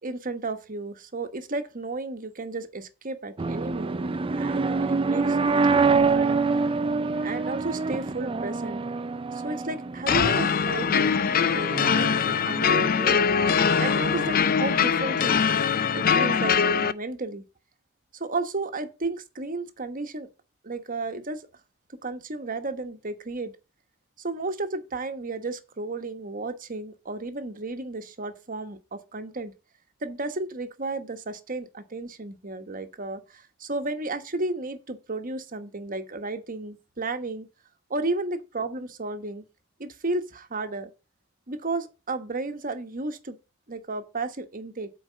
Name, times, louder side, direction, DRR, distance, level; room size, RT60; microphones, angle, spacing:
voice 1, 0.0-6.4 7.2-8.8 9.3-13.3 13.8-15.4 15.9-17.4 18.1-20.3 20.6-21.4 22.0-23.5 24.2-29.5 30.0-37.5 37.9-39.4 39.8-40.9 41.5-43.4 43.7-44.9, right 3 dB, 40° right, 1.2 m, -33 dB
sound 1, 3.4-15.3, right 4 dB, 25° right, 0.4 m, -27 dB
sound 2, 10.1-16.9, left 6 dB, 45° left, 0.5 m, -22 dB
8.4 x 4.5 x 7.4 m
head